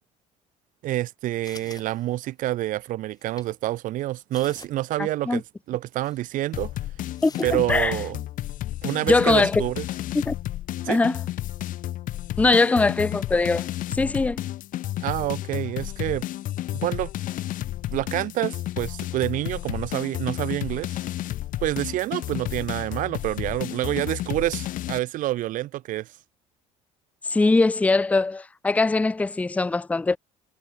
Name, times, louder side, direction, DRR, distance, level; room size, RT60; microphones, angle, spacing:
voice 1, 0.8-6.7 7.4-8.2 8.8-9.9 10.8-11.0 15.0-16.3 16.7-17.1 17.9-21.0 21.6-26.1, right 15 dB, 60° right, 0.7 m, -27 dB
sound 1, 1.4-2.5 3.1-3.5 4.0-4.1 4.3-4.9 5.2-5.3 5.9-6.2 7.1-8.2 9.0-9.3, left 5 dB, 25° left, 3.3 m, -49 dB
voice 2, 5.0-5.4 7.2-7.9 9.1-9.6 10.1-10.3 10.9-11.2 12.4-13.7 13.9-14.4 27.3-30.2, left 3 dB, 10° left, 0.5 m, -21 dB
sound 2, 6.5-25.0, left 14 dB, 60° left, 1.5 m, -32 dB
cardioid pair, 110°, 15 cm